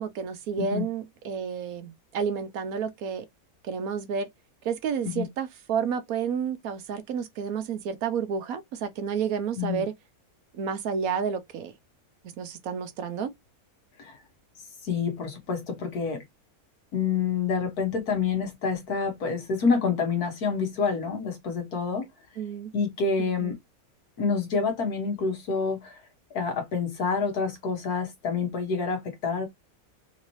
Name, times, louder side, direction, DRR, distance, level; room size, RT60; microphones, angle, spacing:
voice 1, 0.0-3.2 3.6-4.3 4.6-9.9 10.5-11.7 12.4-13.3 22.4-22.7 23.2-23.5, right 6 dB, 75° right, 1.1 m, -30 dB
voice 2, 14.8-16.2 16.9-22.1 22.7-23.6 24.2-26.0 26.3-29.5, left 5 dB, 85° left, 1.7 m, -27 dB
3.9 x 2.7 x 3.0 m
omnidirectional pair, 1.6 m